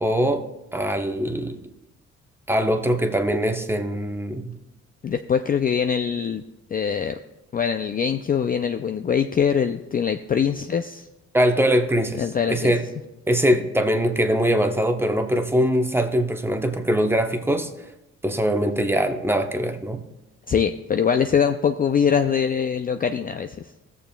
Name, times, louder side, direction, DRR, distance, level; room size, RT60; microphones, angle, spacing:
voice 1, 0.0-0.4 0.7-1.6 2.5-4.5 11.3-12.8 13.3-17.9 18.2-20.0, equal, 10° right, 5 dB, 0.9 m, -22 dB
voice 2, 5.0-6.4 6.7-7.2 7.5-11.1 12.2-12.7 20.5-23.6, left 7 dB, 30° left, 7 dB, 0.4 m, -23 dB
17.0 x 6.9 x 2.3 m, 0.97 s
cardioid pair, 90°, 30 cm